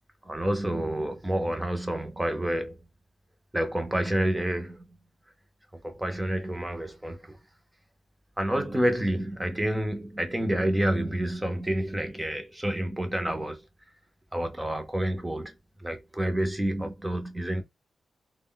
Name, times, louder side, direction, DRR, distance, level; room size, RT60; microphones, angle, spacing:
voice 1, 0.2-2.9 3.5-5.0 5.7-7.4 8.4-13.6 14.3-17.6, right 1 dB, 10° right, 0.6 m, -29 dB
2.1 x 2.0 x 3.7 m
wide cardioid pair, 150°, 0 cm